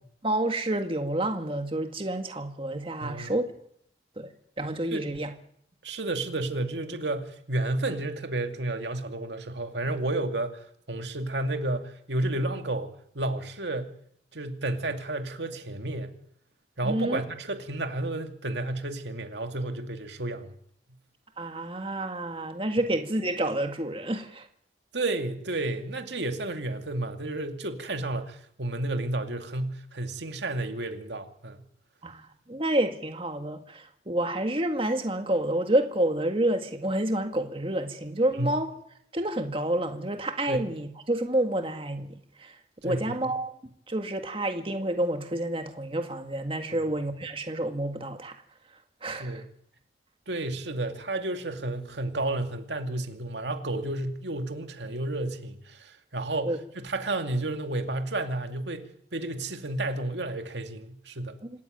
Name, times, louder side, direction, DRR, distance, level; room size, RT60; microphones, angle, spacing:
voice 1, 0.2-3.4 4.2-4.3 4.6-5.3 16.8-17.2 21.4-24.5 32.0-38.7 39.1-42.6 42.8-43.6 43.9-48.4 49.0-49.4 56.5-56.6 61.4-61.5, right 1 dB, 30° right, 1.9 m, -29 dB
voice 2, 3.0-3.3 4.9-5.1 5.8-12.9 13.1-13.9 14.3-16.1 16.8-20.5 24.9-31.6 38.4-38.5 40.5-40.7 42.8-43.0 49.2-49.5 50.3-61.4, right 2 dB, 85° right, 2.4 m, -31 dB
26.5 x 14.0 x 9.2 m
head